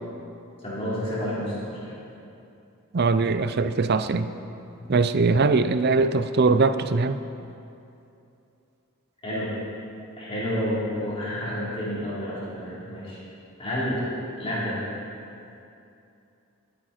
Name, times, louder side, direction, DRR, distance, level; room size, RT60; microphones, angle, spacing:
voice 1, 0.6-1.9 9.2-9.5 10.2-13.2 13.6-14.0 14.4-14.8, equal, 25° left, -8 dB, 3.6 m, -29 dB
voice 2, 2.9-4.3 4.9-7.2, right 3 dB, 50° right, 11 dB, 0.5 m, -21 dB
20.0 x 9.2 x 4.4 m, 2.7 s
head